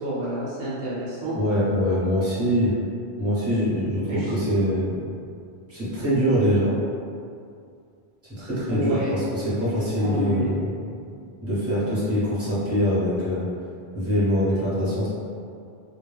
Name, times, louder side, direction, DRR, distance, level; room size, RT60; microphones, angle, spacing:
voice 1, 0.0-1.4 4.1-4.3 8.7-9.1 9.7-10.5, equal, 75° right, -8 dB, 0.9 m, -29 dB
voice 2, 1.3-2.7 3.2-5.1 5.7-6.7 8.4-10.7 11.4-13.4 13.9-15.1, equal, 15° right, -11 dB, 0.8 m, -23 dB
2.2 x 2.2 x 3.2 m, 2.4 s
omnidirectional pair, 1.1 m